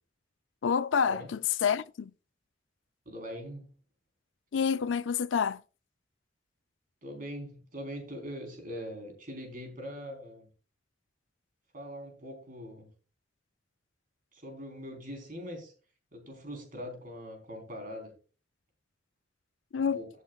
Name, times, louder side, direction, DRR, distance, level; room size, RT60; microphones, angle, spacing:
voice 1, 0.6-2.1 4.5-5.6 19.7-20.0, left 6 dB, 85° left, 0.4 m, -28 dB
voice 2, 3.1-3.7 7.0-10.5 11.7-12.9 14.3-15.7 16.1-18.1 19.8-20.1, equal, 45° right, 3.8 m, -42 dB
16.0 x 8.2 x 2.3 m
head